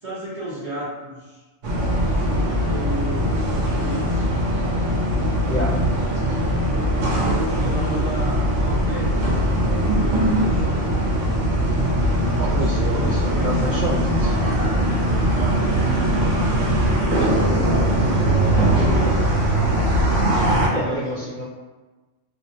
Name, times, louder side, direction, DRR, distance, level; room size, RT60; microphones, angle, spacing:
voice 1, 0.0-1.4 2.1-4.4 7.0-11.0 12.4-13.8 15.3-19.3 20.7-21.2, right 1 dB, 35° right, -12 dB, 0.7 m, -32 dB
sound 1, 1.6-20.7, right 1 dB, 85° right, 0.9 m, -21 dB
voice 2, 12.4-14.3 19.5-19.6 20.7-21.5, equal, 50° left, -9 dB, 0.6 m, -28 dB
2.5 x 2.0 x 2.7 m, 1.2 s
omnidirectional pair, 1.2 m